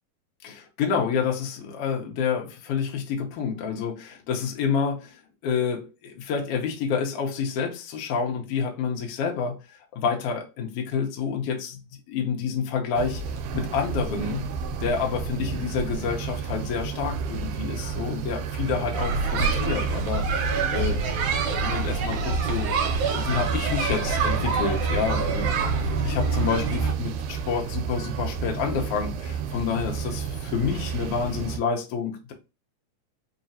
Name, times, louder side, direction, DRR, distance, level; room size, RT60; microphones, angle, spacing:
voice 1, 0.4-9.6 9.9-11.8 12.1-13.2 13.5-14.5 14.8-21.1 21.5-25.5 26.0-32.3, left 6 dB, 70° left, 1.5 m, -28 dB
sound 1, 12.9-31.6, right 6 dB, 90° right, 2.1 m, -32 dB
sound 2, 18.9-26.9, right 4 dB, 70° right, 2.1 m, -26 dB
5.0 x 2.4 x 2.7 m
omnidirectional pair, 3.6 m